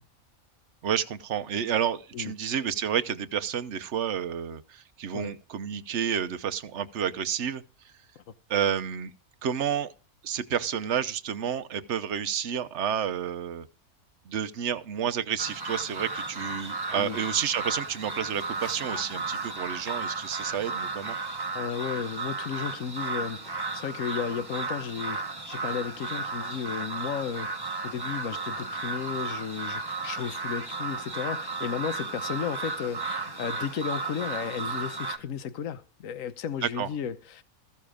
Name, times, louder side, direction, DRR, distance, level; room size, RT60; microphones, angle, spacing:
voice 1, 0.8-7.6 8.5-9.1 9.4-9.9 10.2-13.7 14.3-21.2 36.6-36.9, right 8 dB, 55° right, 1.1 m, -30 dB
sound 1, 15.4-35.2, right 3 dB, 15° right, 1.3 m, -34 dB
voice 2, 21.5-27.5 27.8-37.4, left 8 dB, 65° left, 1.3 m, -34 dB
15.0 x 7.0 x 5.0 m
omnidirectional pair, 1.5 m